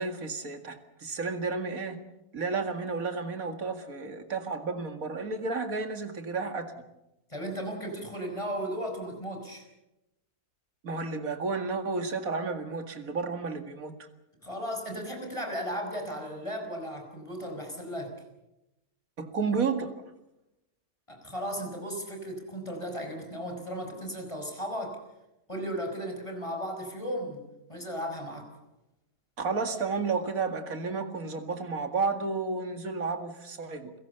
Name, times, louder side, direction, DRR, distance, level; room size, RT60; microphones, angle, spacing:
voice 1, 0.0-2.0 2.3-6.7 10.8-13.9 19.2-19.9 29.4-33.9, right 4 dB, 65° right, 7 dB, 2.5 m, -32 dB
voice 2, 7.3-9.6 14.4-18.2 21.1-25.0 25.5-27.4 27.7-28.6, equal, 20° left, 4 dB, 5.2 m, -35 dB
29.5 x 17.0 x 6.9 m, 0.92 s
omnidirectional pair, 1.6 m